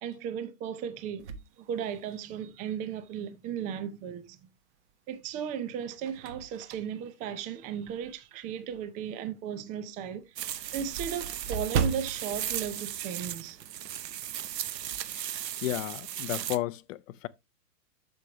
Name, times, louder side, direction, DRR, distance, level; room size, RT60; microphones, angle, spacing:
voice 1, 0.0-1.3 1.6-4.5 5.1-10.2 10.7-13.6, right 8 dB, 15° right, 0.5 m, -36 dB
sound 1, 1.2-2.5 3.1-3.2 4.6-5.1 5.6-8.3 8.7-8.8 9.2-9.3 9.6-9.7 9.9-13.7 14.0-14.2 14.5-15.1, right 6 dB, 45° right, 1.2 m, -37 dB
sound 2, 10.4-16.6, right 11 dB, 90° right, 0.8 m, -37 dB
voice 2, 15.6-17.3, left 15 dB, 50° left, 0.7 m, -33 dB
7.8 x 6.8 x 2.9 m
hypercardioid pair, 130°, 48 cm